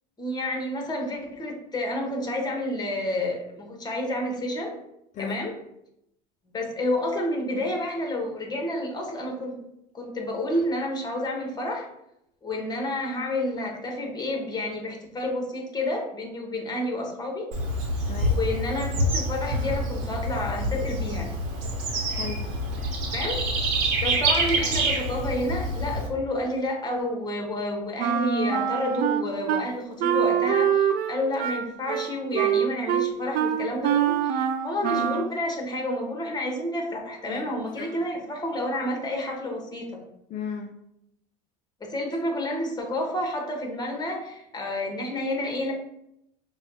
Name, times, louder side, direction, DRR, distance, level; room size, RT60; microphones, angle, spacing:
voice 1, 0.2-4.8 5.2-5.6 6.5-9.6 9.9-11.9 12.4-17.5 18.3-21.3 23.1-23.4 24.0-40.0 41.8-45.7, left 1 dB, 20° left, 1 dB, 1.1 m, -30 dB
Bird / Insect, 17.5-26.1, right 1 dB, 70° right, 0.9 m, -27 dB
voice 2, 18.0-18.4 22.1-22.5 37.3-37.9 40.3-40.8, left 6 dB, 35° left, 5 dB, 0.4 m, -36 dB
Wind instrument woodwind instrument, 28.0-29.6 30.0-35.3, right 9 dB, 50° right, 0.4 m, -25 dB
5.5 x 2.3 x 2.7 m, 0.80 s
hypercardioid pair, 85°, 21 cm